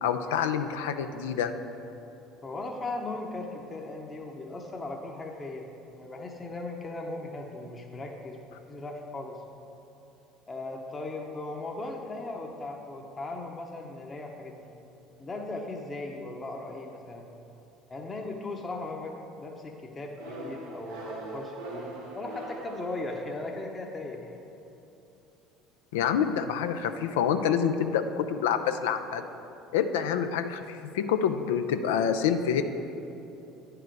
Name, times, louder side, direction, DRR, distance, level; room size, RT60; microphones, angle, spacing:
voice 1, 0.0-1.5 25.9-29.3 29.7-32.6, left 8 dB, 80° left, 8 dB, 0.3 m, -27 dB
voice 2, 2.4-9.4 10.5-14.7 15.2-17.3 17.9-24.4, left 2 dB, 25° left, 1 dB, 0.8 m, -38 dB
sound 1, 20.2-23.7, right 2 dB, 80° right, 1.6 m, -41 dB
9.7 x 4.9 x 4.6 m, 2.9 s
hypercardioid pair, 75°, 0 cm